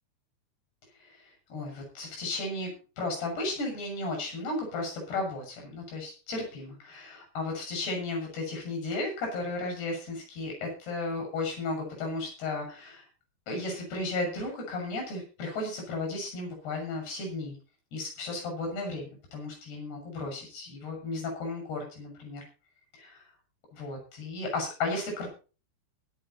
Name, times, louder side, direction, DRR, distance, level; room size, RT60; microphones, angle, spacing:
voice 1, 1.0-2.7 3.0-13.1 13.5-17.6 17.9-22.4 22.9-23.2 23.7-25.3, left 2 dB, 70° left, 2 dB, 8.5 m, -34 dB
21.0 x 8.2 x 4.2 m, 0.35 s
omnidirectional pair, 4.8 m